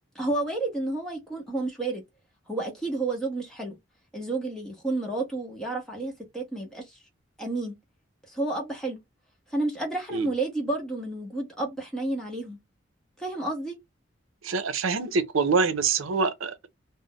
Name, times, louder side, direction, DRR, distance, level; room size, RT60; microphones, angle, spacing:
voice 1, 0.1-2.0 2.5-3.8 4.1-7.0 7.4-7.8 8.3-9.0 9.5-12.6 13.2-13.8, right 2 dB, 5° left, 0.8 m, -30 dB
voice 2, 14.4-16.7, right 4 dB, 85° right, 0.6 m, -25 dB
2.4 x 2.0 x 3.7 m
head